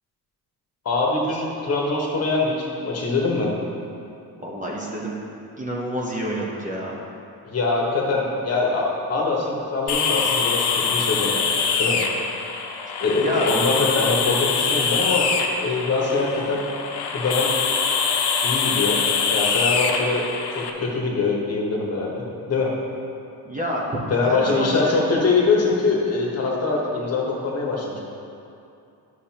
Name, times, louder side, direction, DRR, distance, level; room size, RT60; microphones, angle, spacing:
voice 1, 0.8-3.5 7.4-11.4 11.8-12.0 13.0-15.3 15.6-16.7 17.1-17.5 18.4-19.0 19.3-20.3 20.5-22.7 24.1-28.0, left 3 dB, 40° left, -2 dB, 1.2 m, -23 dB
voice 2, 4.4-5.1 5.6-7.0 12.9-13.5 23.4-23.9 24.3-25.0, equal, 20° right, -4 dB, 0.9 m, -28 dB
sound 1, 9.9-20.7, left 5 dB, 80° left, 0.8 m, -24 dB
11.0 x 6.6 x 2.9 m, 2.7 s
cardioid pair, 155°, 39 cm